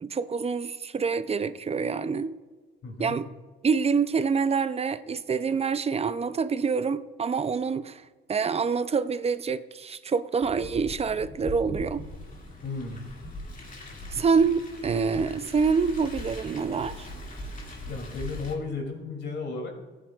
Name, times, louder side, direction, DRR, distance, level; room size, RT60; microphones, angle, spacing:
voice 1, 0.0-2.4 3.0-3.3 3.6-8.0 8.3-12.1 14.1-17.1, right 5 dB, 30° right, 14 dB, 0.5 m, -26 dB
voice 2, 2.8-3.2 12.6-13.0 17.9-19.7, left 3 dB, 65° left, 2 dB, 2.9 m, -34 dB
Car, 10.4-18.5, left 1 dB, 45° left, 2.4 m, -40 dB
16.0 x 9.0 x 2.4 m, 1.3 s
cardioid pair, 90°, 20 cm